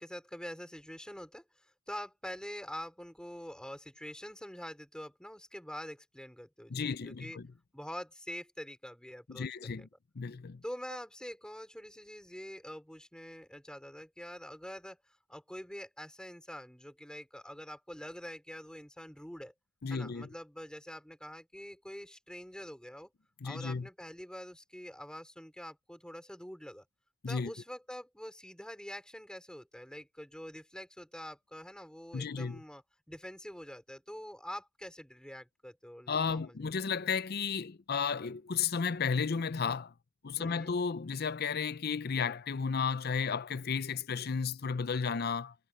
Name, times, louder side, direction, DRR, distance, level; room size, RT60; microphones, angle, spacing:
voice 1, 0.0-7.4 7.7-9.9 10.6-19.5 19.9-23.1 23.4-26.8 27.3-32.8 33.1-36.6 40.4-40.7, equal, 5° left, 5.1 m, -45 dB
voice 2, 6.7-7.5 9.3-9.9 10.2-10.6 19.8-20.3 23.4-23.9 27.2-27.5 32.1-32.6 36.1-39.9 40.2-45.5, left 6 dB, 50° left, 0.6 m, -33 dB
head